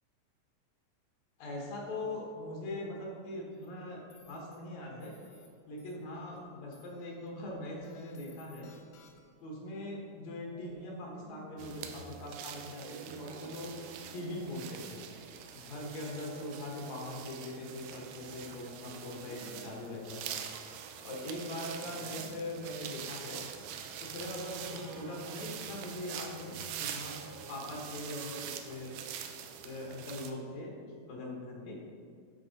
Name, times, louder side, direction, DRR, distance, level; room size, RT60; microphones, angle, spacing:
voice 1, 1.4-5.1 5.7-8.7 9.4-15.0 15.5-20.4 21.0-23.4 24.0-27.2 27.5-29.0 29.6-31.8, left 1 dB, 65° left, -2 dB, 2.5 m, -41 dB
sound 1, 3.5-3.7 4.1-4.6 5.0-5.5 5.8-6.4 6.7-7.3 7.8-9.4, left 5 dB, 85° left, 2.5 m, -62 dB
sound 2, 9.2-9.5 10.5-12.3 13.3-15.0 16.0-17.7 18.7-20.4 21.5-23.2 24.2-25.9 26.9-28.3, right 2 dB, 65° right, 1.8 m, -55 dB
sound 3, 11.6-30.3, right 8 dB, 85° right, 2.1 m, -44 dB
11.0 x 4.4 x 4.0 m, 2.2 s
omnidirectional pair, 3.5 m